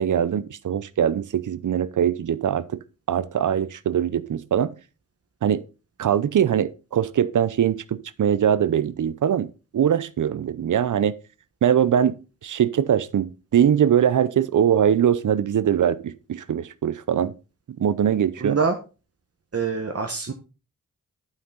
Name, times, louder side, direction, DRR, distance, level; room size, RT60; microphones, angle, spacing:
voice 1, 0.0-2.8 3.1-4.7 5.4-5.6 6.0-9.5 9.7-11.1 11.6-12.2 12.4-17.3 17.8-18.6, right 9 dB, 70° right, 0.7 m, -22 dB
voice 2, 18.4-18.8 19.5-20.3, right 5 dB, 45° right, 1.2 m, -24 dB
11.5 x 5.7 x 3.9 m
cardioid pair, 40°, 32 cm